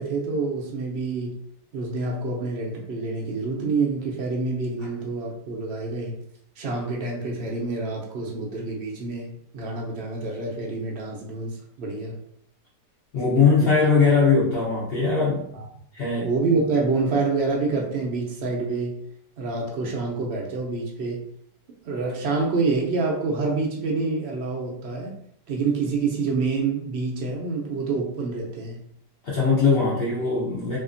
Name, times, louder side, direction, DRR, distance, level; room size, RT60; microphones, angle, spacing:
voice 1, 0.0-1.4 1.7-6.2 6.6-12.2 13.6-13.7 14.0-14.1 16.2-19.0 19.4-21.3 21.8-25.1 25.5-28.8 29.7-29.8, right 3 dB, 75° right, -1 dB, 0.5 m, -27 dB
voice 2, 13.1-15.4 15.9-16.3 29.2-30.8, left 4 dB, 50° left, -7 dB, 0.7 m, -20 dB
2.8 x 2.4 x 2.5 m, 0.69 s
omnidirectional pair, 1.8 m